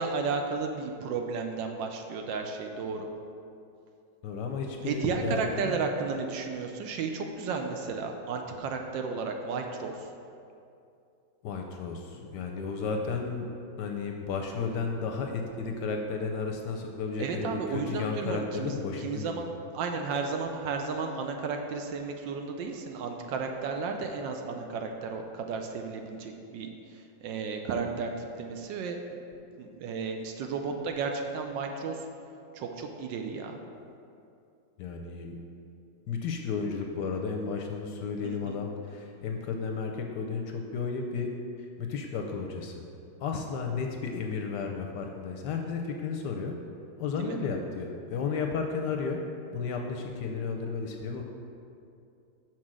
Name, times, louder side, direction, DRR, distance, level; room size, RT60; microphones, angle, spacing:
voice 1, 0.0-3.1 4.8-9.9 17.2-18.7 19.0-19.5 19.7-29.2 29.6-32.0 32.5-33.6 38.2-38.6 47.2-47.4, right 4 dB, 75° right, 4 dB, 1.2 m, -33 dB
voice 2, 4.2-5.8 11.4-13.5 13.8-19.3 34.8-35.4 36.1-41.3 41.8-42.8 43.2-46.5 47.0-49.2 49.5-51.2, left 5 dB, 75° left, 3 dB, 1.1 m, -33 dB
5.9 x 4.6 x 6.1 m, 2.5 s
omnidirectional pair, 2.1 m